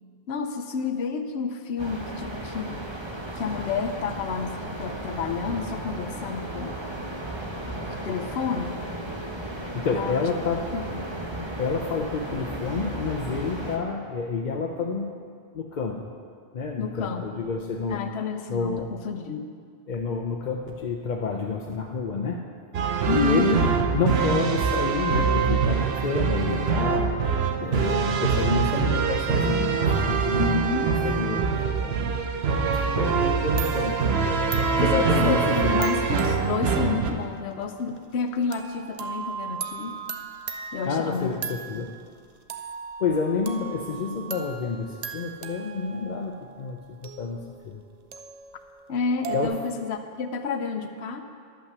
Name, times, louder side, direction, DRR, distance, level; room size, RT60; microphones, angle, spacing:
voice 1, 0.3-2.8 3.3-6.9 7.7-8.8 9.9-10.3 10.7-11.1 16.8-17.5 17.9-19.5 23.0-23.5 30.3-31.0 34.8-40.0 40.7-41.5 48.9-51.2, left 5 dB, 85° left, 7 dB, 1.0 m, -30 dB
sound 1, 1.8-13.8, right 1 dB, 25° right, 1.0 m, -35 dB
voice 2, 9.5-10.7 11.6-15.1 15.5-16.1 16.5-18.0 18.5-18.9 19.9-22.4 23.1-23.7 23.9-27.1 27.6-30.5 31.0-31.5 31.8-32.0 33.0-34.1 34.8-35.8 40.9-41.9 43.0-47.8 49.3-49.6, left 4 dB, 50° left, 1 dB, 0.7 m, -29 dB
sound 2, 22.7-37.1, right 5 dB, 75° right, 1.0 m, -24 dB
sound 3, 32.7-33.3 33.6-42.1 42.5-49.5, right 6 dB, 50° right, 0.6 m, -38 dB
11.0 x 5.7 x 6.7 m, 2.1 s
omnidirectional pair, 1.1 m